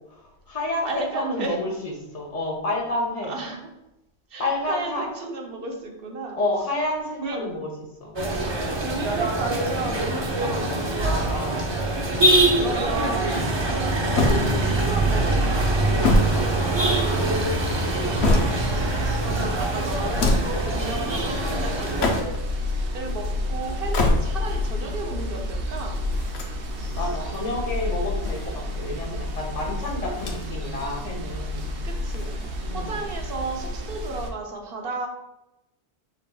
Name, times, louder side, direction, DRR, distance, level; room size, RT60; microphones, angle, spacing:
voice 1, 0.1-3.4 4.4-5.1 6.4-7.7 8.0-8.2 11.0-11.6 17.7-18.2 26.9-31.7 32.6-33.0, left 2 dB, 35° left, -1 dB, 1.0 m, -30 dB
voice 2, 0.8-1.6 3.3-3.7 4.3-6.4 7.2-7.5 8.8-10.8 12.5-17.1 19.2-22.4 22.9-26.0 28.6-28.8 31.8-32.3 32.7-35.1, right 3 dB, 60° right, 2 dB, 1.0 m, -33 dB
sound 1, 8.2-22.2, right 2 dB, 35° right, 0.5 m, -24 dB
sound 2, 14.1-15.0 15.7-17.1 17.8-18.8 20.0-20.7 21.8-22.5 23.7-24.6 26.1-27.1 28.0-28.9 30.1-30.7 31.0-31.1 32.1-32.9, left 2 dB, 75° left, 1.0 m, -25 dB
sound 3, 18.1-34.3, left 1 dB, 90° right, 1.0 m, -30 dB
5.0 x 4.1 x 2.3 m, 0.90 s
omnidirectional pair, 1.1 m